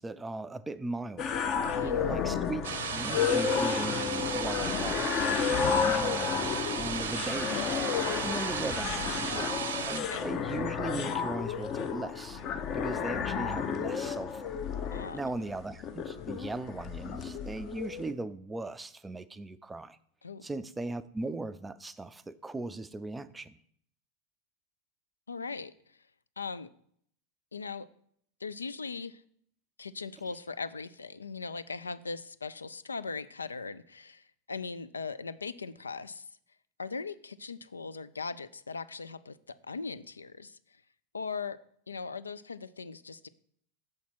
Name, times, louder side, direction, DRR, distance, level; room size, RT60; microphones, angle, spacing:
voice 1, 0.0-1.4 1.8-2.6 2.9-5.1 5.6-7.7 8.2-12.4 12.7-14.5 15.1-20.0 20.4-23.6, right 2 dB, 10° right, 14 dB, 0.4 m, -38 dB
sound 1, 1.2-18.1, left 6 dB, 40° left, 0.7 m, -32 dB
voice 2, 1.6-2.0 10.1-10.2 14.9-15.2 20.2-20.4 25.3-25.7 26.4-26.7 27.5-27.9 28.4-29.2 29.8-36.3 36.8-39.4 39.6-40.6 41.1-41.6 41.9-43.3, left 4 dB, 85° left, 14 dB, 0.3 m, -39 dB
sound 2, 2.6-10.0, right 7 dB, 70° right, 0.7 m, -35 dB
6.4 x 4.2 x 6.0 m, 0.65 s
figure-of-eight pair, 90°, 0 cm